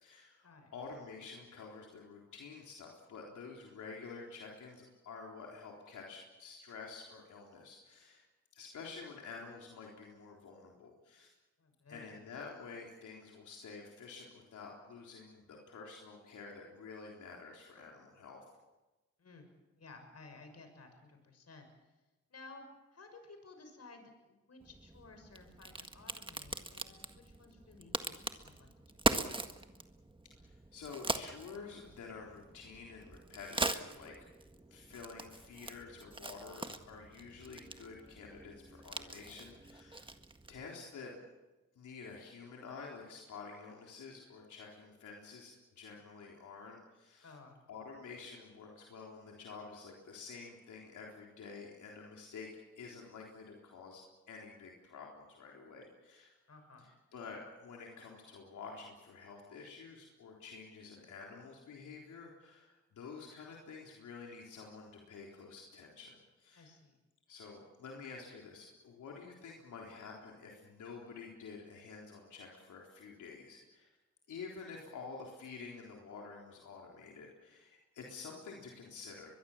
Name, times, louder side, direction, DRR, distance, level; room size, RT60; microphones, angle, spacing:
voice 1, 0.0-8.2 8.5-11.3 11.9-18.4 30.4-34.3 34.7-40.1 40.5-41.2 41.8-47.3 47.7-52.5 52.8-56.3 56.8-66.7 67.3-74.0 74.3-79.3, left 4 dB, 90° left, -1 dB, 3.9 m, -49 dB
voice 2, 11.6-12.1 19.2-19.5 19.7-21.7 22.3-22.6 22.9-28.7 29.1-29.8 47.2-47.6 56.5-56.9 66.5-67.0, left 3 dB, 55° left, 6 dB, 6.5 m, -56 dB
Crack, 24.6-40.7, right 2 dB, 15° right, 1.7 m, -41 dB
23.0 x 22.0 x 7.4 m, 1.1 s
cardioid pair, 65°, 29 cm